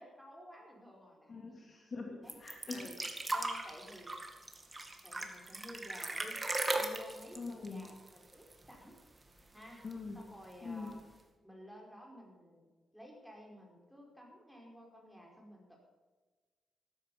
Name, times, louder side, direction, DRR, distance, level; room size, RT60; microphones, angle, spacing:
voice 1, 0.0-1.3 2.2-2.3 2.7-2.9 3.3-4.1 5.0-8.9 9.5-9.9 10.1-11.0 11.4-12.7 12.9-15.8, equal, ahead, -1 dB, 5.0 m, -53 dB
voice 2, 1.3-2.9 7.3-7.8 9.8-10.2 10.6-10.9, left 4 dB, 40° left, 1 dB, 3.2 m, -43 dB
sound 1, 2.3-8.7 9.0-9.1 9.4-10.1 10.9-11.0, right 2 dB, 20° right, 2.1 m, -38 dB
14.5 x 13.5 x 5.6 m, 1.3 s
cardioid pair, 125°, 0 cm